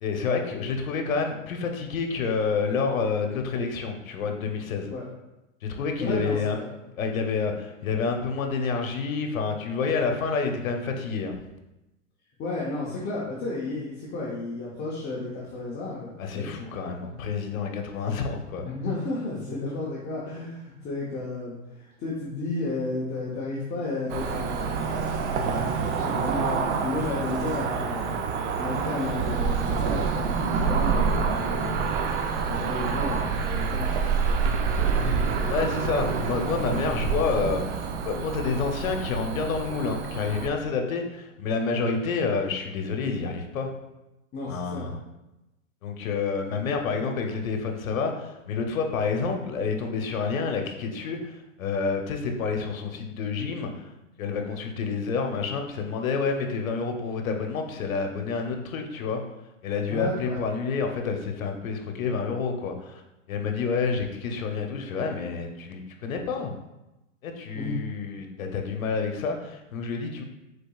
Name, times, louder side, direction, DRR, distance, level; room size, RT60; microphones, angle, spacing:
voice 1, 0.0-4.9 5.6-6.6 7.0-11.4 16.2-18.7 35.5-43.7 44.5-45.0 45.8-53.9 54.2-59.2 59.6-63.0 63.3-66.5 67.2-70.2, left 5 dB, 85° left, 4 dB, 0.9 m, -28 dB
voice 2, 6.0-6.6 12.4-16.5 17.1-17.2 18.6-28.2 28.6-34.5 35.0-35.4 44.3-44.9 59.9-60.4 67.5-67.8, left 2 dB, 25° left, -6 dB, 0.8 m, -33 dB
Cricket / Motor vehicle (road), 24.1-40.5, right 5 dB, 60° right, 0.6 m, -27 dB
5.2 x 4.1 x 2.3 m, 0.97 s
hypercardioid pair, 135°, 40 cm